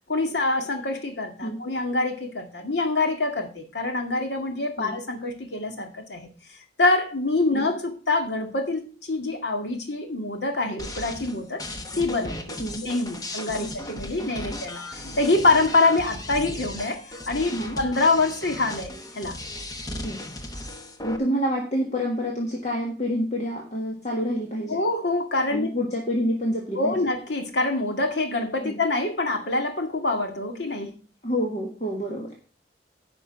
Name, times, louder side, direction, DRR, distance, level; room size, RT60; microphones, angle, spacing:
voice 1, 0.1-6.3 6.8-11.6 12.0-12.6 12.8-19.4 24.7-25.7 26.8-30.9, left 2 dB, 75° left, 5 dB, 2.0 m, -25 dB
sound 1, 10.8-21.2, left 1 dB, 20° left, 1.0 m, -36 dB
voice 2, 13.6-13.9 14.4-14.5 17.5-17.8 20.0-20.2 21.0-24.8 25.5-27.1 28.6-28.8 31.2-32.3, equal, 40° left, -1 dB, 1.6 m, -28 dB
10.0 x 5.4 x 5.8 m, 0.36 s
head